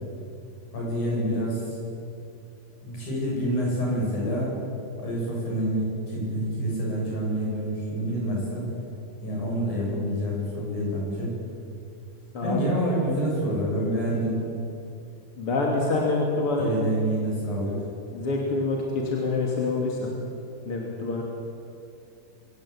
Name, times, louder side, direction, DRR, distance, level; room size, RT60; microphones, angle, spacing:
voice 1, 0.7-1.8 2.8-4.5 5.0-8.7 9.2-11.4 12.4-14.3 16.6-17.8, equal, 60° left, -4 dB, 9.3 m, -27 dB
voice 2, 12.3-12.7 15.4-16.8 18.1-20.1 20.6-21.2, left 3 dB, 40° left, -1 dB, 3.4 m, -26 dB
25.0 x 17.0 x 8.7 m, 2.5 s
omnidirectional pair, 4.0 m